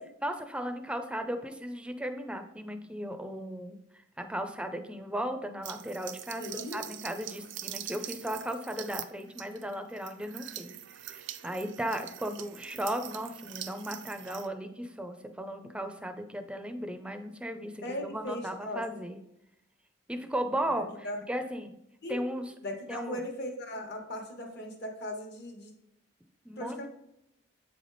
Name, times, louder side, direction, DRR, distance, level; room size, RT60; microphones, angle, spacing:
voice 1, 0.2-6.4 6.7-19.2 20.1-21.7 22.1-22.5 22.9-23.2 26.4-26.8, equal, 5° right, 6 dB, 0.5 m, -36 dB
sound 1, 5.6-14.5, right 11 dB, 65° right, 0.4 m, -43 dB
voice 2, 6.4-6.8 17.8-18.8 21.0-21.2 22.0-22.2 22.6-25.7 26.6-26.9, left 1 dB, 55° left, 3 dB, 1.2 m, -38 dB
8.0 x 3.4 x 4.0 m, 0.83 s
head